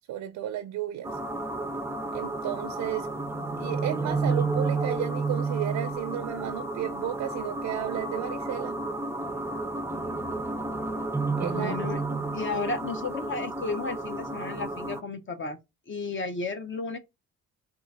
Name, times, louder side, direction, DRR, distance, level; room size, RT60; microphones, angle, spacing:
voice 1, 0.1-1.2 2.1-3.1 3.6-8.8 11.4-11.8 12.1-12.2, right 12 dB, 80° right, 0.6 m, -33 dB
sound 1, 1.0-15.0, right 3 dB, 10° right, 0.5 m, -31 dB
voice 2, 11.5-12.0 12.3-15.6 15.9-17.0, left 3 dB, 40° left, 0.7 m, -33 dB
3.8 x 2.4 x 4.0 m
cardioid pair, 90°, 30 cm